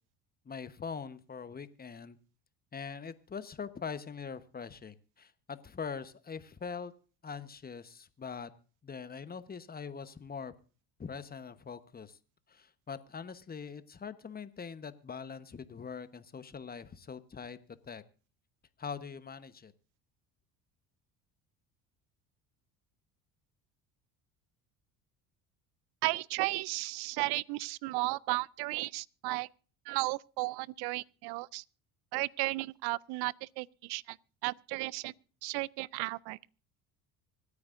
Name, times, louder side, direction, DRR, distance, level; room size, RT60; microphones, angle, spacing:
voice 1, 0.4-2.2 2.7-6.9 7.2-8.5 8.8-10.5 11.0-12.2 12.5-17.6 17.8-18.0 18.8-19.7, left 6 dB, 20° left, 1.0 m, -42 dB
voice 2, 26.0-29.5 29.9-31.6 32.1-34.2 34.4-35.1 35.4-36.4, right 23 dB, 65° right, 0.5 m, -34 dB
25.0 x 9.7 x 2.5 m
supercardioid pair, 80°, 41 cm